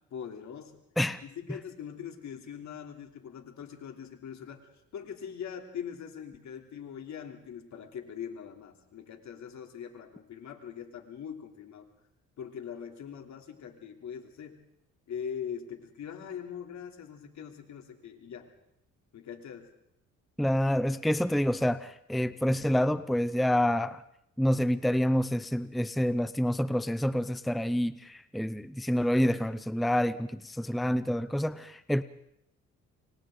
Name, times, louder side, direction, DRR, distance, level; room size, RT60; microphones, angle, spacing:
voice 1, 0.1-0.8 1.2-11.9 12.4-14.6 15.1-18.5 19.1-19.7, left 8 dB, 65° left, 4 dB, 3.2 m, -42 dB
voice 2, 20.4-24.0 24.4-32.0, equal, ahead, 14 dB, 0.7 m, -27 dB
29.0 x 25.0 x 3.9 m, 0.76 s
cardioid pair, 90°, 30 cm